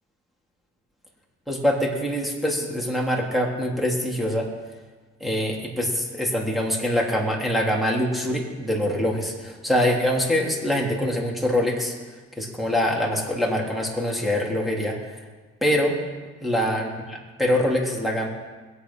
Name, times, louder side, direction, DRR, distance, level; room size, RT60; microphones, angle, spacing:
voice 1, 1.5-4.5 5.2-11.9 12.4-15.2 15.6-16.0 16.4-18.3, equal, ahead, -3 dB, 3.5 m, -24 dB
21.5 x 8.5 x 5.7 m, 1.3 s
cardioid pair, 90°, 30 cm